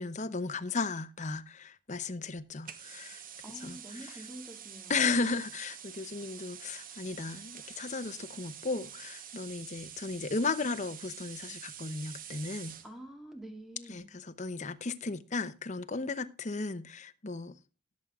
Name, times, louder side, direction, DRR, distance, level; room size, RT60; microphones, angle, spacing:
voice 1, 0.0-3.2 3.6-3.8 4.9-12.7 13.9-17.5, left 4 dB, 40° left, 0.9 m, -35 dB
sound 1, 2.6-12.9, right 9 dB, 50° right, 1.0 m, -47 dB
voice 2, 3.4-5.3 12.8-14.0, right 1 dB, ahead, 2.3 m, -47 dB
18.0 x 7.4 x 3.6 m
head